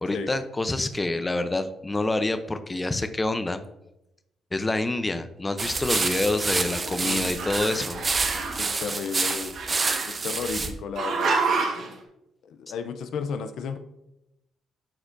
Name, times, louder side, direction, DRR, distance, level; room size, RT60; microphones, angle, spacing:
voice 1, 0.0-3.6 4.5-8.0, left 2 dB, 20° left, 9 dB, 0.6 m, -27 dB
sound 1, 5.6-10.7, right 4 dB, 35° right, 0.7 m, -28 dB
Growling, 5.7-7.0 7.2-8.7 9.5-10.5 11.0-11.9, right 4 dB, 65° right, 1.4 m, -29 dB
voice 2, 7.0-7.3 8.6-9.6 10.1-11.3 12.4-13.8, left 6 dB, 75° left, 9 dB, 0.5 m, -33 dB
11.5 x 4.4 x 2.6 m, 0.88 s
cardioid pair, 90°, 0 cm